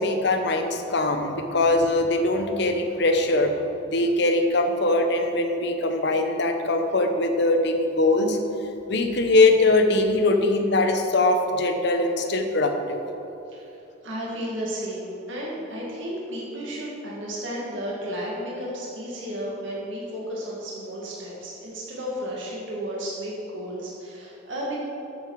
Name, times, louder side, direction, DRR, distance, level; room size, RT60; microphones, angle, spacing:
voice 1, 0.0-3.5 3.9-8.4 8.9-13.0, left 2 dB, 65° left, 5 dB, 1.0 m, -22 dB
voice 2, 14.0-24.8, equal, 85° right, -5 dB, 1.9 m, -33 dB
13.0 x 6.9 x 4.8 m, 2.9 s
head